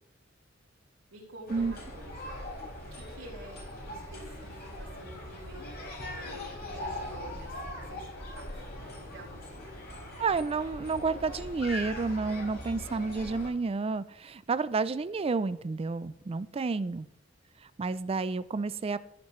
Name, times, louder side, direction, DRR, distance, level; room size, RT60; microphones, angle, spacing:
voice 1, 1.1-2.4 2.7-9.9, equal, 90° right, -5 dB, 4.1 m, -49 dB
sound 1, 1.5-13.5, left 1 dB, 55° left, 4.5 m, -41 dB
voice 2, 10.2-17.1 17.6-19.0, right 4 dB, 30° right, 15 dB, 0.4 m, -30 dB
14.5 x 8.6 x 3.2 m, 0.83 s
head